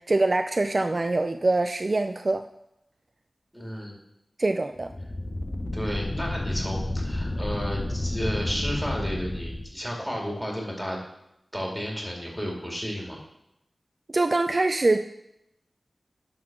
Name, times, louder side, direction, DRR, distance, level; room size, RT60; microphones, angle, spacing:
voice 1, 0.1-2.4 4.4-4.9 14.1-15.0, right 2 dB, 40° right, 7 dB, 0.3 m, -24 dB
voice 2, 3.5-4.0 5.7-11.0 11.5-13.2, equal, ahead, -1 dB, 2.4 m, -32 dB
sound 1, 4.8-9.6, left 1 dB, 35° left, 0.9 m, -31 dB
11.0 x 4.0 x 6.0 m, 0.82 s
wide cardioid pair, 85°, 0 cm